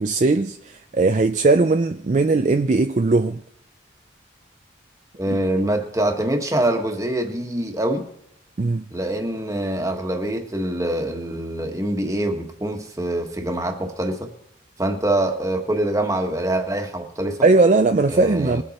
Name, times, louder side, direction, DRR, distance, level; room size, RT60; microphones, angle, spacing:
voice 1, 0.0-3.4 8.6-8.8 17.4-18.6, right 3 dB, 40° right, 0.4 m, -18 dB
voice 2, 5.1-8.0 8.9-14.3 14.8-17.4 18.1-18.6, right 1 dB, 15° right, 1.4 m, -24 dB
21.0 x 7.9 x 4.3 m
head